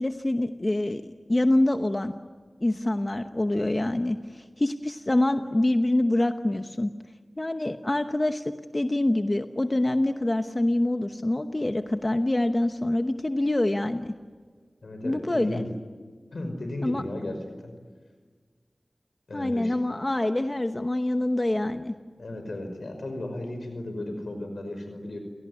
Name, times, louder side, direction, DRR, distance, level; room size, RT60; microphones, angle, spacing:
voice 1, 0.0-2.1 2.6-6.9 7.4-8.4 8.7-14.1 15.0-15.6 16.8-17.0 19.3-21.9, left 1 dB, 35° left, 7 dB, 1.0 m, -25 dB
voice 2, 14.8-15.7 16.3-17.4 17.6-17.7 19.3-19.7 22.2-25.2, left 1 dB, 80° left, 6 dB, 5.4 m, -35 dB
29.5 x 18.0 x 9.7 m, 1.5 s
wide cardioid pair, 50°, 0 cm